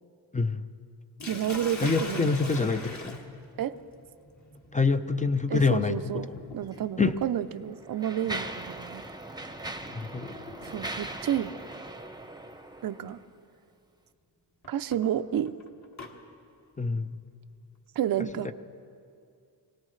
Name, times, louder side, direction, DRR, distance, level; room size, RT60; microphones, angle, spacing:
Sink (filling or washing), 1.2-11.1 12.2-12.6 13.1-13.2 14.6-16.1, left 2 dB, 40° left, 1.9 m, -44 dB
voice 1, 1.3-2.5 3.6-3.8 5.5-6.3 6.5-9.0 10.7-11.5 12.8-13.2 14.7-15.5 18.0-18.5, right 10 dB, 55° right, 12 dB, 0.6 m, -30 dB
voice 2, 1.8-3.2 4.7-6.0 6.3-6.4 7.0-7.2 9.9-10.4 16.8-17.2 18.4-18.5, left 4 dB, 15° left, 9 dB, 0.6 m, -26 dB
Mechanisms, 6.6-6.8 7.5-13.3, right 2 dB, 10° right, 0.9 m, -40 dB
25.0 x 18.0 x 3.2 m, 2.4 s
cardioid pair, 85°, 43 cm